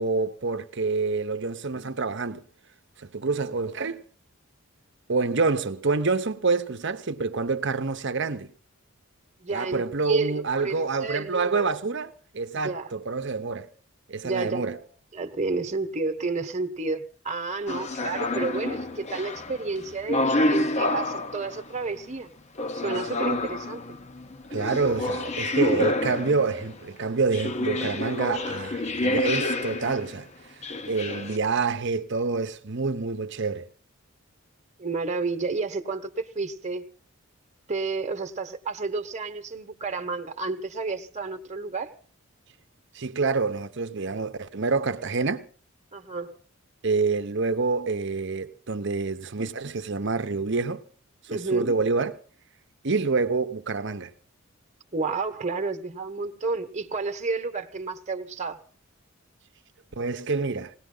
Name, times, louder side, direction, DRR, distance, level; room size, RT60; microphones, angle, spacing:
voice 1, 0.0-2.4 3.0-4.0 5.1-8.5 9.5-13.7 14.1-14.8 24.5-30.6 30.9-33.7 42.9-45.5 46.8-50.8 51.2-52.2 52.8-54.1 60.0-60.7, right 4 dB, 55° right, 0.9 m, -27 dB
voice 2, 9.4-11.7 12.6-12.9 14.2-14.8 15.1-22.3 22.7-23.8 34.8-36.8 37.7-41.9 45.9-46.3 51.3-51.7 54.9-58.6, right 3 dB, 35° right, 1.2 m, -31 dB
sound 1, 17.7-21.8 22.6-26.7 27.3-30.1 30.6-31.4, left 2 dB, 30° left, 0.8 m, -28 dB
19.5 x 18.0 x 3.9 m
head